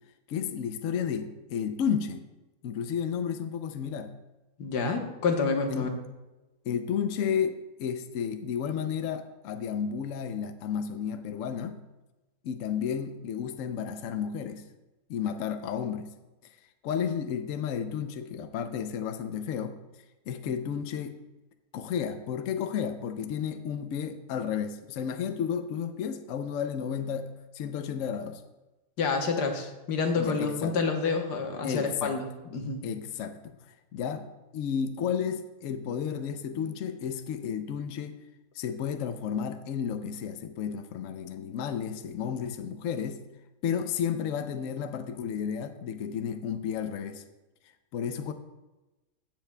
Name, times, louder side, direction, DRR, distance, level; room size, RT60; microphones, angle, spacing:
voice 1, 0.3-2.3 2.6-4.1 5.7-5.9 6.6-11.8 12.4-14.6 15.1-16.1 16.8-19.8 20.3-21.2 21.7-28.4 30.1-30.8 31.6-32.2 32.8-33.6 33.9-34.3 34.5-38.2 38.5-43.2 43.6-47.2 47.9-48.3, left 7 dB, 65° left, 8 dB, 0.9 m, -32 dB
voice 2, 4.6-5.9 29.0-32.8, left 4 dB, 85° left, 3 dB, 1.7 m, -28 dB
15.0 x 7.3 x 2.2 m, 1.1 s
omnidirectional pair, 1.7 m